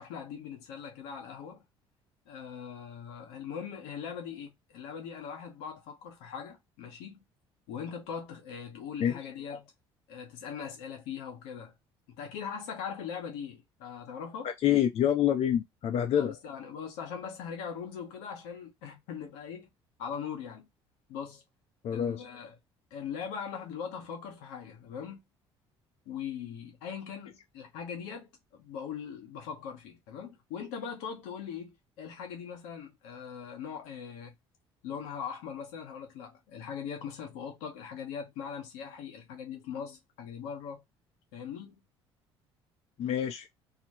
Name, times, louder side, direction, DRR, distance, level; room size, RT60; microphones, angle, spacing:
voice 1, 0.0-1.6 2.3-7.2 7.7-9.7 10.1-11.7 12.1-14.5 16.2-19.7 20.0-20.7 21.1-21.4 21.9-22.6 22.9-25.2 26.1-34.3 34.8-40.8 41.3-41.8, left 7 dB, 80° left, 0.8 m, -40 dB
voice 2, 14.4-16.3 21.8-22.2 43.0-43.5, left 10 dB, 55° left, 0.5 m, -27 dB
2.4 x 2.1 x 2.9 m
hypercardioid pair, 60°, 13 cm